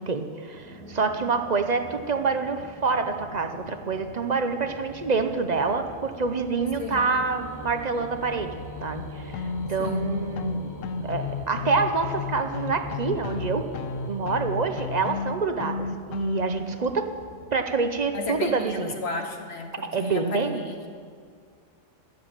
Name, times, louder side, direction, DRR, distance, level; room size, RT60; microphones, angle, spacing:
voice 1, 0.0-8.5 8.8-10.7 11.0-13.6 14.1-17.1 17.5-18.9 19.8-20.6, right 4 dB, 45° right, 7 dB, 0.6 m, -27 dB
sound 1, 0.5-18.6, equal, 75° right, 2.0 m, -46 dB
sound 2, 4.6-15.3, left 2 dB, 20° left, 0.5 m, -43 dB
sound 3, 9.3-16.7, left 5 dB, 75° left, 1.0 m, -32 dB
voice 2, 18.1-20.8, left 3 dB, 55° left, 3 dB, 1.4 m, -33 dB
12.0 x 7.8 x 8.8 m, 2.1 s
omnidirectional pair, 1.3 m